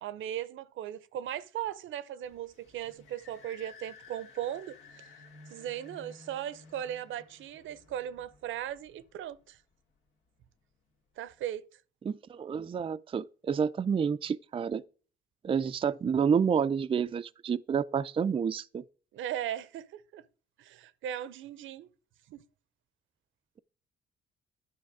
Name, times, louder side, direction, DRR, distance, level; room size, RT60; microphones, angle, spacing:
voice 1, 0.0-5.1 5.5-9.6 11.2-11.7 19.1-20.2 20.6-21.9 22.3-22.4, right 11 dB, 80° right, 0.7 m, -38 dB
sound 1, 2.2-9.6, left 4 dB, 85° left, 2.3 m, -55 dB
voice 2, 12.0-14.8 15.4-18.8, right 7 dB, 25° right, 0.4 m, -29 dB
10.5 x 5.8 x 4.7 m
cardioid pair, 90°, 20 cm